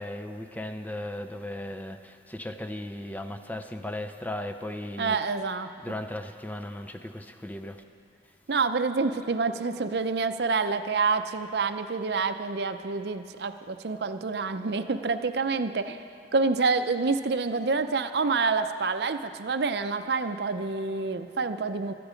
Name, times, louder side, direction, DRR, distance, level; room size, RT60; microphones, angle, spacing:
voice 1, 0.0-5.2 5.8-7.8, left 1 dB, 10° left, 6 dB, 0.5 m, -36 dB
voice 2, 5.0-5.7 8.5-16.0 16.3-21.9, right 4 dB, 65° right, 9 dB, 0.6 m, -27 dB
17.0 x 13.0 x 5.1 m, 2.3 s
head